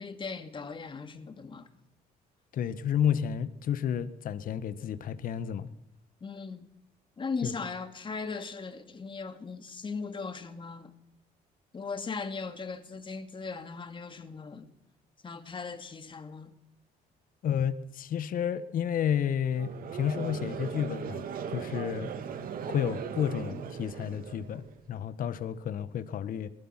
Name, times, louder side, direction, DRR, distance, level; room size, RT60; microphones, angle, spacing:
voice 1, 0.0-1.7 6.2-6.7 7.2-10.9 11.7-14.7 15.2-16.6, left 4 dB, 30° left, 2.6 m, -38 dB
voice 2, 2.5-5.7 7.4-7.5 17.4-21.2 21.5-22.1 22.7-26.5, left 9 dB, 55° left, 1.4 m, -31 dB
Conversation / Crowd, 19.5-24.8, right 7 dB, 60° right, 2.4 m, -38 dB
22.5 x 19.5 x 6.0 m
cardioid pair, 110°, 17 cm